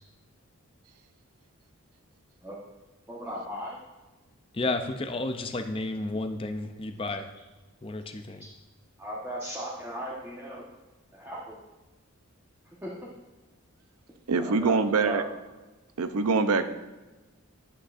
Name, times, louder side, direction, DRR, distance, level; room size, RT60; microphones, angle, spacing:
voice 1, 3.1-3.8 8.4-8.5 9.0-10.7 11.1-11.6 12.8-12.9 14.3-14.7 15.0-15.3, equal, 10° right, -7 dB, 1.1 m, -37 dB
voice 2, 4.5-7.3 7.8-8.4, left 2 dB, 25° left, 7 dB, 0.5 m, -32 dB
voice 3, 14.3-15.2 16.0-16.7, right 4 dB, 85° right, 10 dB, 0.6 m, -24 dB
9.9 x 8.6 x 2.5 m, 1.2 s
head